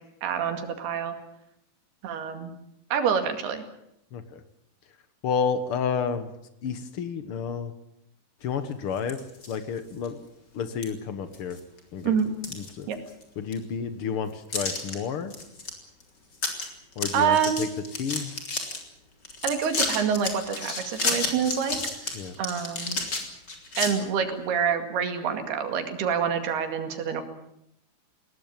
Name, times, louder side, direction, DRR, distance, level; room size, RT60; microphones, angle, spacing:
voice 1, 0.2-1.1 2.0-2.5 2.9-3.6 12.0-12.3 12.9-13.0 17.1-17.7 19.4-21.8 22.4-23.0 23.8-27.2, right 7 dB, 85° right, 7 dB, 4.2 m, -26 dB
voice 2, 5.2-6.3 6.6-7.7 8.4-9.2 9.5-10.2 10.5-11.6 11.9-12.1 12.5-12.9 13.4-15.3 17.0-17.7 18.0-18.3 22.1-22.3, left 6 dB, 80° left, 10 dB, 1.2 m, -30 dB
sound 1, 9.0-9.6 10.0-10.1 10.8-10.9 11.3-11.8 12.2-13.2 13.5-13.6 14.5-14.9 15.3-15.7 16.0-16.1 16.3-16.7 16.9-18.8 19.2-23.9, left 3 dB, 25° left, 3.8 m, -31 dB
21.0 x 18.5 x 8.9 m, 0.77 s
omnidirectional pair, 4.4 m